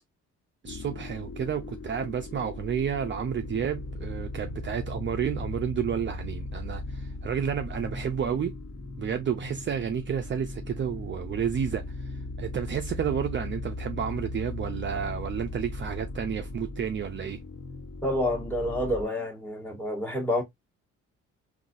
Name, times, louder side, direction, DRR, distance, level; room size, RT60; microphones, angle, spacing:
sound 1, 0.6-19.0, left 2 dB, 50° left, 1.4 m, -38 dB
voice 1, 0.6-8.6 9.0-11.8 12.4-17.4, right 8 dB, 40° right, 0.5 m, -31 dB
voice 2, 18.0-20.4, left 1 dB, 5° left, 1.3 m, -28 dB
3.9 x 2.7 x 2.4 m
cardioid pair, 90°, 30 cm